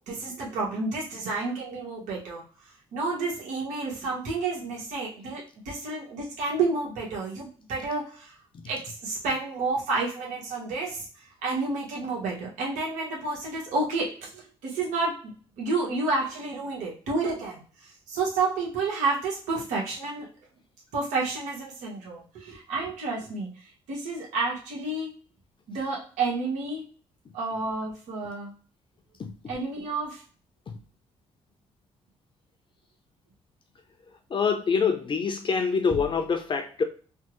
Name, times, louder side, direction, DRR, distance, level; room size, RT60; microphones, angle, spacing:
voice 1, 0.1-2.4 2.9-8.3 8.7-11.0 11.4-17.6 18.1-20.3 20.9-23.5 23.9-25.1 25.7-26.8 27.3-28.5 29.5-30.2, right 3 dB, 90° right, 1.2 m, -30 dB
voice 2, 34.3-36.8, left 5 dB, 45° left, 0.6 m, -25 dB
3.3 x 2.1 x 3.0 m
cardioid pair, 75°, 12 cm